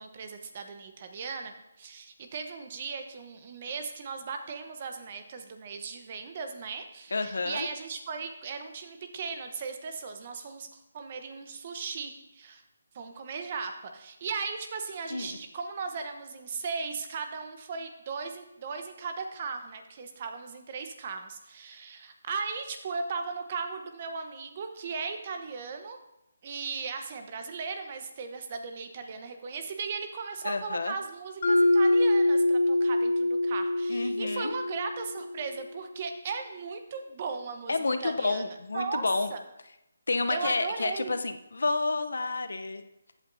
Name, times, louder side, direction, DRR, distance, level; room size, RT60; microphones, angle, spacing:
voice 1, 0.0-12.6 12.9-26.0 26.4-38.4 38.7-39.0 39.3-39.4 40.3-41.2, right 5 dB, 35° right, 6 dB, 1.0 m, -37 dB
voice 2, 7.1-7.7 15.1-15.4 30.4-30.9 33.9-34.5 37.7-39.3 40.1-42.8, left 3 dB, 75° left, 9 dB, 0.8 m, -30 dB
Mallet percussion, 31.4-35.5, left 1 dB, 55° left, 1.5 m, -25 dB
15.0 x 8.5 x 2.7 m, 0.89 s
hypercardioid pair, 165°, 0 cm